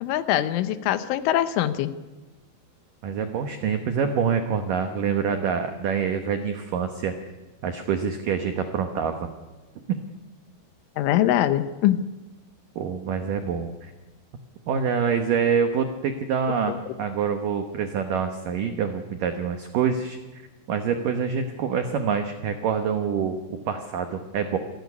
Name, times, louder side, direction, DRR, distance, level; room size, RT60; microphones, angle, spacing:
voice 1, 0.0-1.9 11.0-12.0 16.7-16.8, left 12 dB, 80° left, 12 dB, 3.3 m, -23 dB
voice 2, 3.0-7.1 7.6-9.3 12.8-13.9 14.7-20.4 20.7-23.4 23.7-24.6, right 6 dB, 80° right, 6 dB, 1.9 m, -26 dB
26.5 x 13.5 x 9.6 m, 1.2 s
omnidirectional pair, 5.7 m